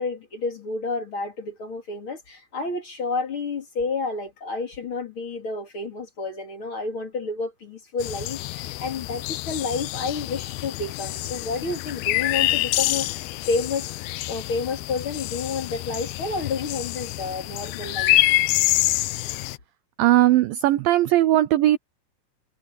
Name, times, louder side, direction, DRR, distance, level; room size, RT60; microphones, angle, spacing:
voice 1, 0.0-13.1 13.4-13.9 14.3-18.2, left 4 dB, 35° left, 3.1 m, -30 dB
sound 1, 8.0-19.6, left 18 dB, 80° left, 2.3 m, -26 dB
voice 2, 20.0-21.8, right 15 dB, 85° right, 2.0 m, -18 dB
omnidirectional pair, 4.8 m